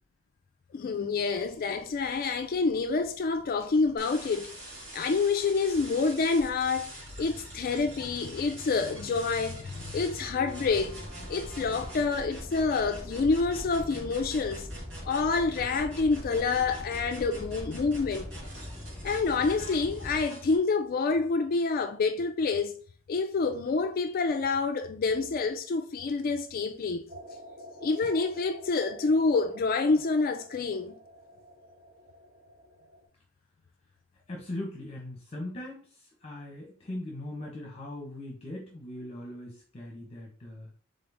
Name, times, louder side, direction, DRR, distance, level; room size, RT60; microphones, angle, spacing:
voice 1, 0.7-4.5 4.9-11.0 11.3-14.7 15.1-18.3 19.0-22.7 23.1-27.1 27.8-31.0, left 4 dB, 45° left, 0.4 m, -27 dB
sound 1, 1.2-20.2, left 1 dB, ahead, 0.8 m, -45 dB
sound 2, 4.0-20.6, right 1 dB, 65° right, 2.2 m, -44 dB
sound 3, 27.1-33.1, right 1 dB, 35° right, 1.4 m, -49 dB
voice 2, 34.3-40.7, left 1 dB, 30° left, 1.0 m, -40 dB
3.8 x 3.8 x 3.5 m
head